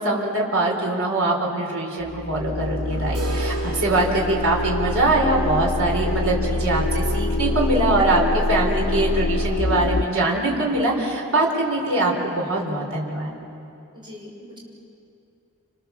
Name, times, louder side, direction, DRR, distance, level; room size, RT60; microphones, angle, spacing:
voice 1, 0.0-13.3, right 2 dB, 65° right, -1 dB, 4.6 m, -23 dB
sound 1, 2.0-10.0, left 1 dB, 65° left, 1.1 m, -25 dB
sound 2, 3.1-9.0 9.2-9.3 9.7-9.8 10.3-10.4 11.3-11.4, right 1 dB, 80° right, 4.9 m, -39 dB
voice 2, 13.9-14.6, left 1 dB, 20° right, -3 dB, 6.6 m, -41 dB
29.5 x 28.0 x 7.3 m, 2.8 s
head